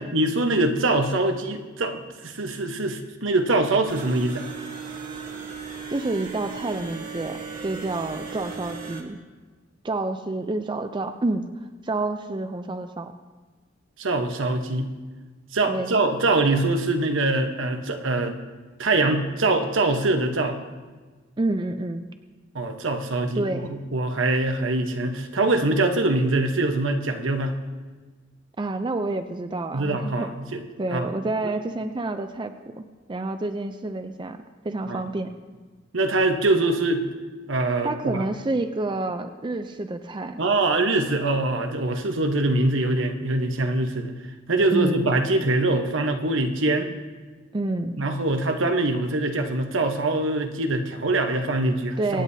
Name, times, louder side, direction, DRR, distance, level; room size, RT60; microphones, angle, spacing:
voice 1, 0.0-4.5 14.0-14.9 15.5-18.4 18.8-20.6 22.5-27.6 29.7-30.6 30.9-31.1 31.4-31.5 34.9-35.0 35.9-37.0 37.5-38.3 40.4-44.1 44.5-46.9 48.0-52.2, right 2 dB, 75° right, 5 dB, 1.1 m, -23 dB
sound 1, 3.8-9.0, right 5 dB, 45° right, 1.6 m, -36 dB
voice 2, 5.9-9.2 9.8-11.5 11.8-13.1 15.7-16.0 21.4-22.1 23.3-23.7 28.6-30.3 30.8-35.3 37.8-40.4 44.7-45.1 47.5-48.0 52.0-52.2, right 2 dB, 25° right, 7 dB, 0.4 m, -28 dB
24.5 x 9.2 x 2.8 m, 1.4 s
head